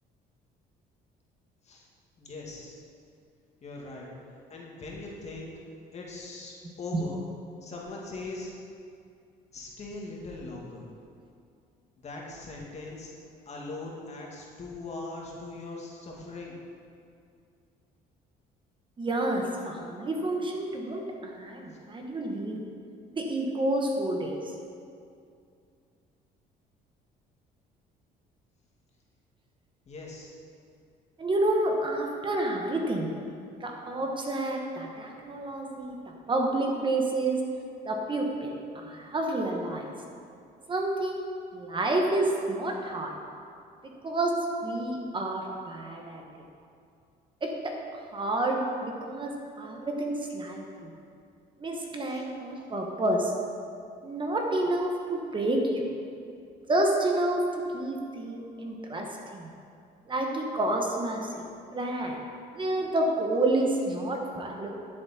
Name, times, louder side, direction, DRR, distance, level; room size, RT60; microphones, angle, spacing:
voice 1, 2.2-2.8 3.6-4.1 4.5-5.5 5.9-7.2 7.6-8.5 9.5-10.8 12.0-13.1 13.5-16.6 29.9-30.3 35.2-35.3 52.1-52.3, left 3 dB, 40° left, -2 dB, 2.1 m, -40 dB
voice 2, 19.0-22.6 23.1-24.5 31.2-33.1 33.6-37.4 37.8-39.9 40.7-41.3 41.5-43.1 44.0-46.2 47.4-47.7 48.1-49.3 49.6-50.9 51.6-53.3 54.0-55.9 56.7-57.4 57.7-59.1 59.3-59.5 60.1-61.4 61.7-62.2 62.5-64.7, right 1 dB, 30° right, 1 dB, 1.2 m, -29 dB
12.0 x 7.4 x 4.3 m, 2.4 s
cardioid pair, 110°, 17 cm